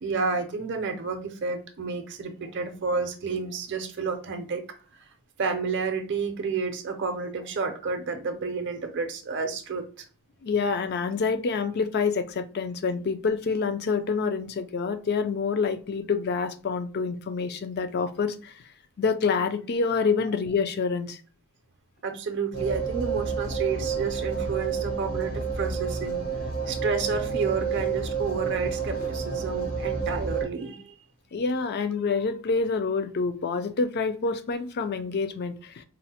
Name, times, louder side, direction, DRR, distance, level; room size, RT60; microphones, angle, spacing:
voice 1, 0.0-4.6 5.4-10.1 22.0-26.2 26.7-31.0, right 4 dB, 55° right, 6 dB, 0.5 m, -30 dB
voice 2, 10.4-18.5 19.0-21.2 31.3-35.8, left 5 dB, 45° left, 10 dB, 0.4 m, -27 dB
sound 1, 22.5-30.5, right 5 dB, 80° left, 1.0 m, -29 dB
4.0 x 2.0 x 2.8 m, 0.39 s
head